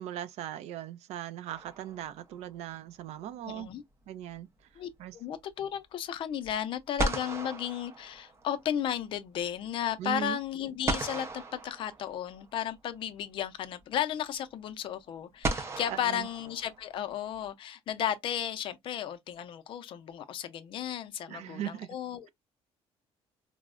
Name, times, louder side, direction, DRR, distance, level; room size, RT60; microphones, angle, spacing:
voice 1, 0.0-3.7 4.1-4.5 5.0-5.2 10.0-10.4 15.9-16.3 21.3-21.9, right 11 dB, 80° right, 0.4 m, -38 dB
sound 1, 1.5-2.4 6.4-6.5 7.0-8.7 10.9-12.5 13.8-13.9 15.4-17.1, right 2 dB, 25° right, 0.5 m, -35 dB
voice 2, 3.5-3.8 4.8-22.3, left 10 dB, 50° left, 0.4 m, -34 dB
4.3 x 2.0 x 2.4 m
cardioid pair, 175°, 11 cm